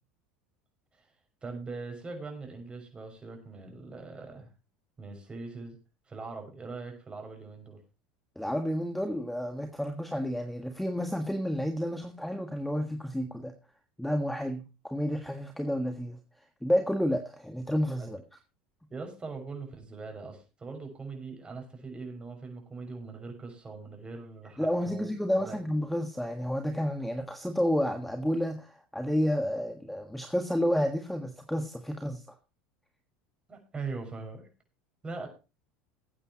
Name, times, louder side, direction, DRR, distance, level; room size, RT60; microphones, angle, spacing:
voice 1, 1.4-4.5 5.0-5.8 6.1-7.8 18.0-18.1 18.9-25.1 25.4-25.6 33.5-34.5 35.0-35.3, right 4 dB, 20° right, 4 dB, 6.1 m, -41 dB
voice 2, 8.3-13.5 14.0-16.2 16.6-18.2 24.6-32.2, equal, 5° left, 6 dB, 1.6 m, -30 dB
19.0 x 8.9 x 3.0 m, 0.30 s
hypercardioid pair, 90°, 4 cm